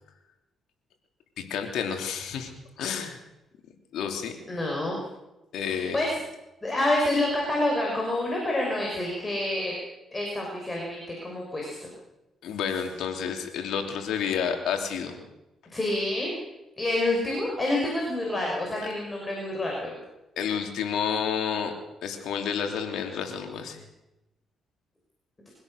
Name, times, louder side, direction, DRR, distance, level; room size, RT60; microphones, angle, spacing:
voice 1, 1.4-2.5 2.8-3.2 3.9-4.4 5.5-6.0 12.4-15.2 20.4-21.7 22.0-23.8, left 7 dB, 80° left, 4 dB, 3.2 m, -30 dB
voice 2, 4.5-5.0 5.6-6.1 6.6-9.7 10.1-11.8 15.7-16.4 16.8-19.9, left 1 dB, 20° left, -2 dB, 6.3 m, -28 dB
24.0 x 16.5 x 6.6 m, 0.96 s
cardioid pair, 90°, 0 cm